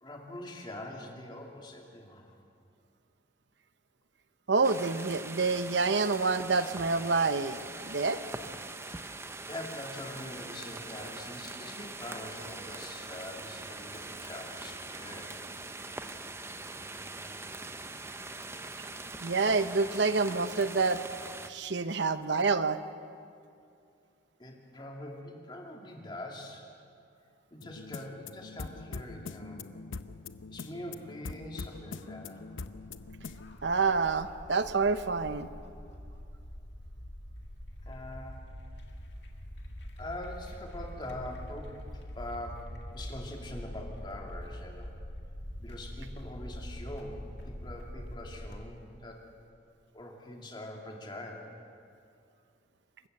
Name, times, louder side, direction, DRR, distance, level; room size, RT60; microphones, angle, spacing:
voice 1, 0.0-2.3 8.9-15.4 24.4-26.7 27.5-29.7 30.5-32.4 37.9-38.5 40.0-44.9 45.6-49.2 49.9-51.5, left 1 dB, 25° left, 0 dB, 2.6 m, -43 dB
voice 2, 4.5-8.2 19.2-21.0 21.5-22.8 33.6-35.5, right 4 dB, 65° right, 11 dB, 0.9 m, -27 dB
sound 1, 4.6-21.5, right 3 dB, 15° right, 0.7 m, -42 dB
sound 2, 27.6-33.6, left 4 dB, 85° left, 0.7 m, -43 dB
sound 3, 31.6-48.6, equal, 60° left, 2.0 m, -44 dB
27.0 x 15.5 x 6.8 m, 2.4 s
head